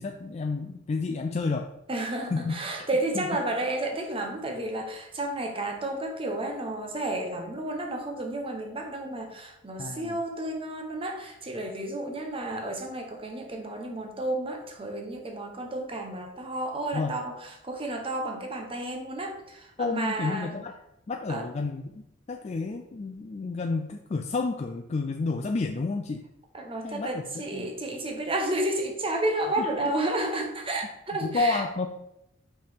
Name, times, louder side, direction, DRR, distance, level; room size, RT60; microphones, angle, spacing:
voice 1, 0.0-1.7 2.3-2.5 3.2-3.3 9.8-10.2 16.9-17.1 19.8-20.7 21.1-21.9 22.3-26.2 26.8-27.2 27.5-27.7 29.6-29.7 31.2-31.9, left 3 dB, 35° left, 3 dB, 0.4 m, -30 dB
voice 2, 1.9-20.5 21.3-21.5 26.5-31.6, right 1 dB, 30° right, 3 dB, 0.9 m, -31 dB
5.7 x 5.3 x 3.5 m, 0.84 s
head